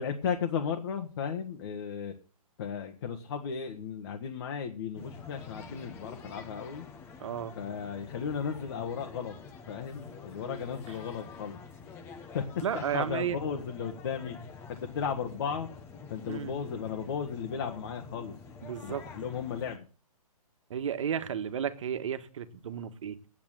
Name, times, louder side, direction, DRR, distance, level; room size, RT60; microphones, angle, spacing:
voice 1, 0.0-2.1 2.6-6.9 7.5-9.4 9.7-11.6 12.3-12.5 12.7-14.4 14.9-15.7 16.1-18.3 18.8-19.9, left 7 dB, 45° left, 3 dB, 1.4 m, -35 dB
sound 1, 4.9-19.8, left 5 dB, 10° left, 0.9 m, -47 dB
voice 2, 7.2-7.6 12.6-13.4 16.3-16.5 18.6-19.0 20.7-23.2, right 8 dB, 55° right, 9 dB, 1.5 m, -33 dB
8.9 x 8.2 x 9.1 m, 0.39 s
hypercardioid pair, 155°, 19 cm